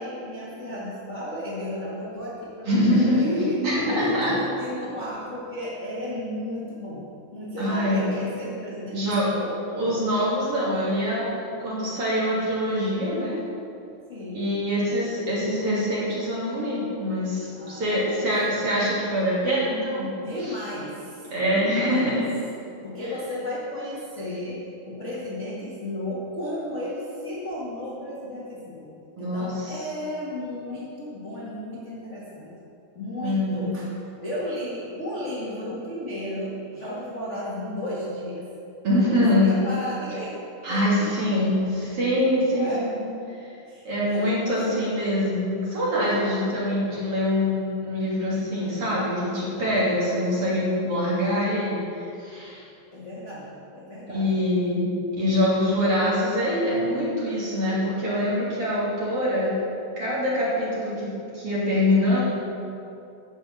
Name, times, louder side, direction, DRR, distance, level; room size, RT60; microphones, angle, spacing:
voice 1, 0.0-3.6 3.9-7.0 7.3-9.6 14.1-14.4 17.6-18.3 20.2-22.2 22.8-28.9 29.2-32.5 32.9-33.9 34.2-38.5 38.9-40.3 40.7-41.1 42.4-42.8 43.7-43.8 44.1-44.9 52.9-54.4 55.6-55.8, left 1 dB, 30° left, -8 dB, 1.5 m, -34 dB
voice 2, 2.7-4.3 7.6-8.1 8.9-9.3 9.7-13.4 14.3-20.1 20.4-20.5 21.3-22.3 29.2-29.8 33.2-33.7 38.8-39.6 40.6-43.0 43.4-43.5 43.9-52.6 54.1-59.6 60.0-62.2, left 1 dB, 40° right, -8 dB, 3.6 m, -24 dB
10.5 x 6.9 x 7.5 m, 2.6 s
omnidirectional pair, 4.2 m